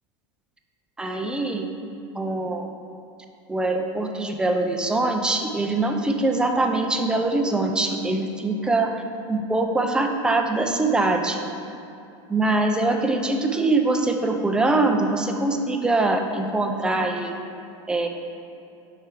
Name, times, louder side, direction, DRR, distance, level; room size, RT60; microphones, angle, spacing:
voice 1, 1.0-1.7 2.2-2.7 3.5-9.0 9.3-11.4 12.3-17.3 17.9-18.1, right 2 dB, 5° right, 3 dB, 0.3 m, -23 dB
4.7 x 4.6 x 4.5 m, 2.7 s
supercardioid pair, 130°, 15 cm